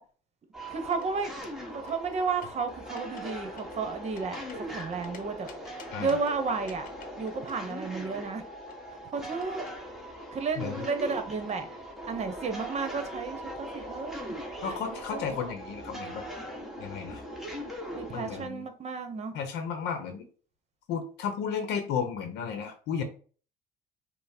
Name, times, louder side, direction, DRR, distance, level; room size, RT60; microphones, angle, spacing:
sound 1, 0.5-18.5, equal, ahead, 1.1 m, -40 dB
voice 1, 0.7-1.3 1.7-5.5 6.0-6.9 7.2-8.4 9.1-9.6 10.3-11.7 12.1-14.2 14.6-15.2 17.9-19.3, right 4 dB, 40° right, 8 dB, 0.9 m, -32 dB
sound 2, 0.8-1.5 1.9-2.6 3.0-3.3 3.6-5.2 5.5-6.3 6.7-9.7, left 6 dB, 55° left, 0.9 m, -50 dB
voice 2, 10.6-10.9 14.6-16.2 16.8-17.2 18.1-18.7 19.3-20.2 20.9-23.0, left 7 dB, 80° left, 7 dB, 0.7 m, -33 dB
5.5 x 2.0 x 4.2 m, 0.41 s
cardioid pair, 110°, 17 cm